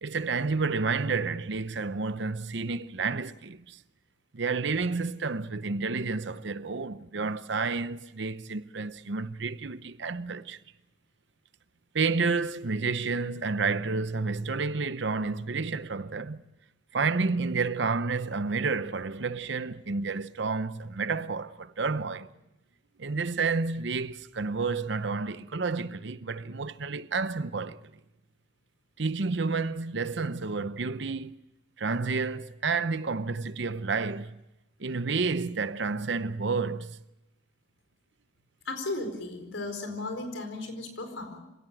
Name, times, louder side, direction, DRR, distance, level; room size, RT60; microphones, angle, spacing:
voice 1, 0.0-3.8 4.3-10.6 11.9-16.4 16.9-22.3 23.0-27.8 29.0-31.3 31.8-34.4 34.8-37.0, right 4 dB, 65° right, 0.8 m, -30 dB
voice 2, 38.6-41.4, left 2 dB, 90° left, 4.6 m, -35 dB
26.0 x 17.5 x 9.1 m
head